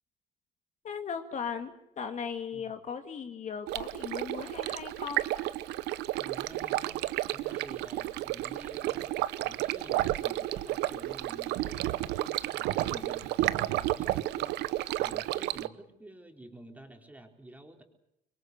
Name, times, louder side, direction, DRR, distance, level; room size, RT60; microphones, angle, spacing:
voice 1, 0.8-5.2 12.8-13.1, left 6 dB, 45° left, 7 dB, 2.1 m, -38 dB
Stream, 3.7-15.7, right 16 dB, 90° right, 1.0 m, -32 dB
voice 2, 6.2-17.8, right 1 dB, 10° right, 3 dB, 4.3 m, -50 dB
26.0 x 23.0 x 8.0 m, 0.78 s
cardioid pair, 110°, 17 cm